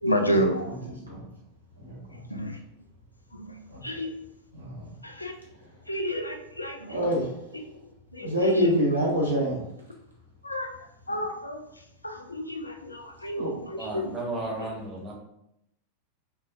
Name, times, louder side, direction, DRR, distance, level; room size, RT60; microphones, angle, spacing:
voice 1, 0.0-0.8 2.3-2.6 3.3-4.1 5.0-5.3 5.9-7.0 7.5-7.6 8.1-8.6 10.4-10.7 11.1-11.6 12.0-14.1, equal, 85° left, 4 dB, 0.3 m, -30 dB
voice 2, 0.6-1.2 1.8-2.2 3.7-3.8 4.5-4.9 6.9-7.3 8.2-9.6 13.4-13.5, equal, 80° right, -4 dB, 0.9 m, -26 dB
voice 3, 13.8-15.1, right 2 dB, 20° right, -3 dB, 0.9 m, -34 dB
2.9 x 2.2 x 2.3 m, 0.78 s
figure-of-eight pair, 90°, 0 cm